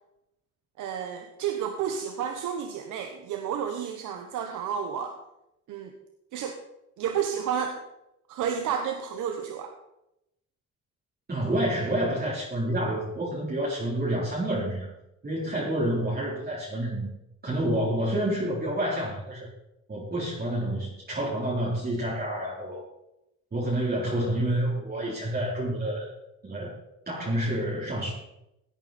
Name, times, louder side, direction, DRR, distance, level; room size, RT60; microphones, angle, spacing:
voice 1, 0.8-5.1 5.7-5.9 6.3-6.6 7.0-7.8 8.3-9.7, right 8 dB, 85° right, 6 dB, 1.1 m, -31 dB
voice 2, 11.3-14.9 15.2-17.1 17.4-19.5 19.9-22.8 23.5-26.1 26.4-26.7 27.1-28.1, right 1 dB, 30° right, -7 dB, 4.0 m, -28 dB
16.5 x 8.7 x 4.3 m, 0.88 s
cardioid pair, 90°, 30 cm